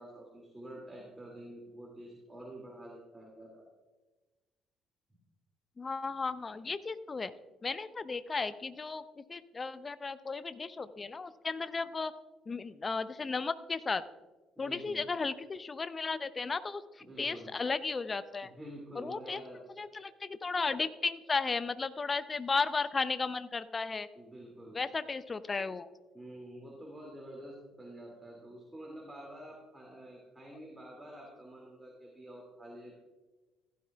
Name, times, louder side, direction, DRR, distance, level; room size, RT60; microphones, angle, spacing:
voice 1, 0.0-3.7 14.6-15.1 17.0-17.5 18.4-19.9 24.1-24.8 26.1-32.9, right 1 dB, 10° right, -2 dB, 2.5 m, -48 dB
voice 2, 5.8-7.3 7.6-12.1 12.5-14.0 14.6-16.8 17.2-18.5 19.0-19.4 19.8-24.1 24.7-25.9, left 4 dB, 30° left, 14 dB, 0.6 m, -34 dB
15.5 x 12.0 x 2.4 m, 1.2 s
hypercardioid pair, 50°, 0 cm